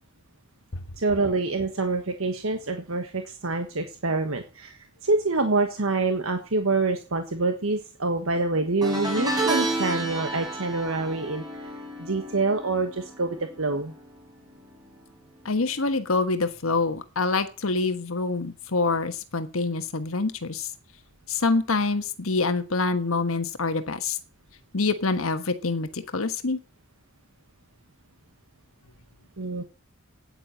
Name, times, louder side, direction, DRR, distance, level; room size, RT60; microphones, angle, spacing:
voice 1, 1.0-4.7 5.0-11.7 12.0-13.9 29.4-29.6, right 3 dB, 80° right, 6 dB, 1.4 m, -26 dB
sound 1, 8.8-14.2 14.5-14.9 16.1-16.2, right 1 dB, 20° right, 5.0 m, -31 dB
voice 2, 15.4-20.7 21.3-24.2 24.7-26.6, left 3 dB, 85° left, 10 dB, 1.3 m, -26 dB
9.9 x 9.3 x 7.2 m, 0.35 s
head